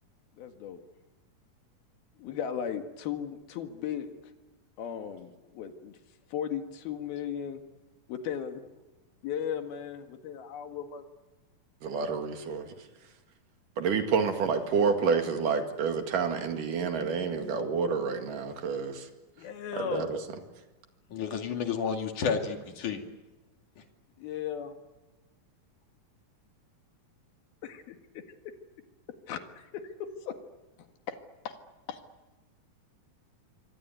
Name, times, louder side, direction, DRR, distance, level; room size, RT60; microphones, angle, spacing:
voice 1, 0.4-0.8 2.2-4.1 4.8-6.0 6.3-7.6 8.1-8.6 9.2-11.0 14.7-15.0 19.4-20.2 24.2-24.8 27.6-28.2 29.3-30.4 31.1-31.2 31.5-31.6 31.9-32.0, left 8 dB, 85° left, 7 dB, 3.7 m, -36 dB
voice 2, 11.8-12.7 13.8-19.1 19.8-20.2, right 5 dB, 65° right, 6 dB, 3.6 m, -29 dB
voice 3, 21.1-23.0, left 6 dB, 60° left, 5 dB, 3.8 m, -31 dB
26.5 x 23.5 x 9.3 m, 1.1 s
omnidirectional pair, 4.2 m